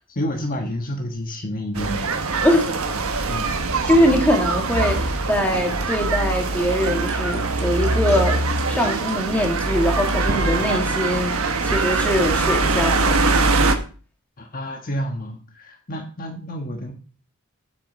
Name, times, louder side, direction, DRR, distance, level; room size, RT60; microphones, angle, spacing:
voice 1, 0.1-2.4 3.3-3.5 14.4-16.9, equal, 40° left, 3 dB, 1.4 m, -29 dB
sound 1, 1.7-13.7, right 3 dB, 85° right, 1.3 m, -22 dB
voice 2, 2.4-2.7 3.9-8.4 8.7-13.2, equal, 5° left, 2 dB, 2.0 m, -22 dB
sound 2, 6.6-10.4, right 4 dB, 55° right, 2.7 m, -40 dB
8.2 x 6.4 x 5.9 m, 0.39 s
head